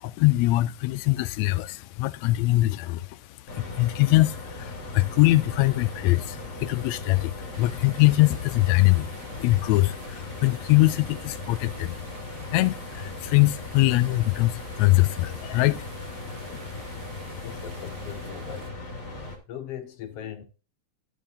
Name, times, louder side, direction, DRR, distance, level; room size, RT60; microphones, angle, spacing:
voice 1, 0.0-3.2 3.5-12.0 12.4-16.0 16.3-16.6, left 19 dB, 80° left, 1.6 m, -23 dB
sound 1, 3.5-19.4, left 2 dB, 35° left, 2.5 m, -38 dB
sound 2, 7.5-18.7, right 6 dB, 55° right, 1.3 m, -50 dB
voice 2, 17.4-18.8 19.2-20.4, left 9 dB, 65° left, 1.9 m, -40 dB
12.5 x 7.3 x 2.6 m
omnidirectional pair, 3.5 m